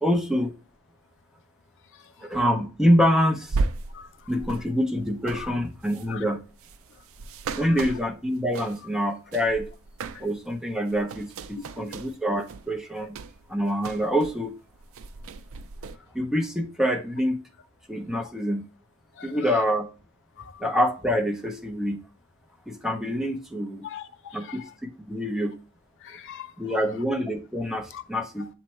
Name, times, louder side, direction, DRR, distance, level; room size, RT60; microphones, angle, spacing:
voice 1, 0.0-0.5 2.2-3.6 4.3-6.4 7.6-9.7 10.2-13.2 13.5-14.5 16.1-17.4 17.9-18.6 19.2-19.9 20.6-22.0 22.7-23.9 24.3-24.6 25.1-25.6 26.6-28.5, equal, ahead, 0.7 m, -26 dB
sound 1, 3.5-9.0 9.3-10.5 10.8-14.5 14.7-16.0, right 3 dB, 65° right, 0.5 m, -35 dB
voice 2, 7.5-7.8 10.1-10.3 11.6-11.9 19.2-19.6 20.4-20.6 23.8-24.7 26.0-26.8 27.9-28.0 28.4-28.5, left 8 dB, 55° left, 0.6 m, -42 dB
7.3 x 3.1 x 4.4 m
head